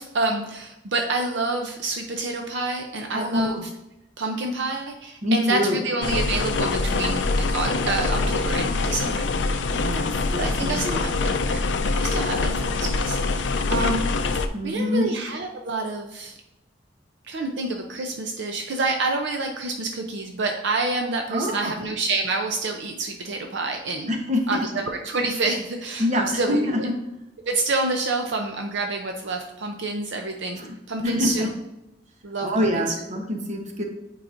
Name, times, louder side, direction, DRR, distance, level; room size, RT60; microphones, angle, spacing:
voice 1, 0.0-3.6 4.2-9.3 10.3-14.1 14.6-16.3 17.2-24.1 24.5-26.9 27.5-30.6 30.9-31.5 32.2-32.9, right 3 dB, 65° right, 3 dB, 0.6 m, -28 dB
voice 2, 3.1-3.7 5.2-5.8 9.7-11.0 14.5-15.1 21.3-21.7 24.1-24.7 26.0-26.9 30.6-31.5 32.4-33.8, left 1 dB, 40° right, 3 dB, 0.9 m, -25 dB
sound 1, 6.0-14.5, left 3 dB, 65° left, 0.4 m, -24 dB
8.8 x 4.8 x 2.6 m, 0.89 s
head